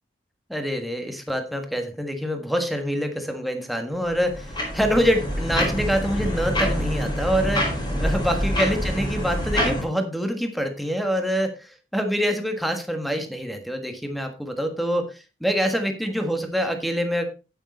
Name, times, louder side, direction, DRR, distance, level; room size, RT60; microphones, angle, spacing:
voice 1, 0.5-17.2, equal, ahead, 5 dB, 1.5 m, -25 dB
sound 1, 4.0-9.8, equal, 25° left, 4.3 m, -26 dB
9.2 x 8.6 x 4.2 m, 0.31 s
head